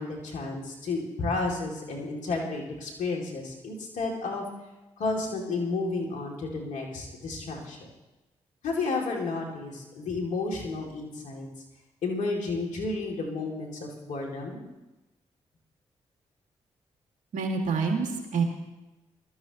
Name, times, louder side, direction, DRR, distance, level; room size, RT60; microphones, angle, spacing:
voice 1, 0.0-4.4 5.0-7.9 8.6-11.5 12.0-14.6, left 3 dB, 75° left, 0 dB, 2.6 m, -32 dB
voice 2, 17.3-18.4, right 5 dB, 75° right, 2 dB, 2.2 m, -27 dB
19.5 x 13.0 x 3.0 m, 1.0 s
supercardioid pair, 45°, 13 cm